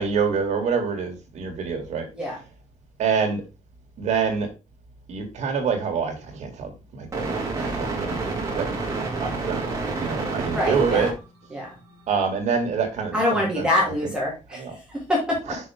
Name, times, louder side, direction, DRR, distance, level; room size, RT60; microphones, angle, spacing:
voice 1, 0.0-2.1 3.0-3.4 4.0-4.5 5.1-8.2 8.5-8.7 9.2-9.7 10.0-11.1 12.1-13.7 14.6-14.7, right 6 dB, 70° right, 3 dB, 2.2 m, -26 dB
sound 1, 7.1-11.2 11.9-12.0, right 3 dB, 25° right, 2.1 m, -28 dB
voice 2, 10.5-11.1 11.5-11.7 13.1-15.6, left 1 dB, 5° right, -4 dB, 2.4 m, -25 dB
6.1 x 5.8 x 3.5 m, 0.29 s
wide cardioid pair, 180°, 12 cm